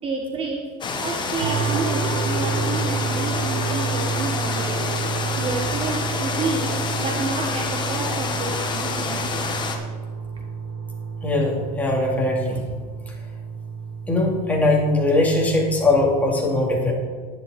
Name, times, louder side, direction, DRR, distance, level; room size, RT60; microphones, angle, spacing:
voice 1, 0.0-4.8 5.4-9.2, right 3 dB, 30° right, 3 dB, 1.1 m, -30 dB
sound 1, 0.8-9.8, left 4 dB, 25° left, 1.4 m, -28 dB
sound 2, 1.4-16.2, right 5 dB, 85° right, 1.6 m, -30 dB
voice 2, 11.2-12.6 14.1-16.9, left 2 dB, 10° left, -2 dB, 2.7 m, -20 dB
10.0 x 10.0 x 4.2 m, 1.5 s
supercardioid pair, 125°, 20 cm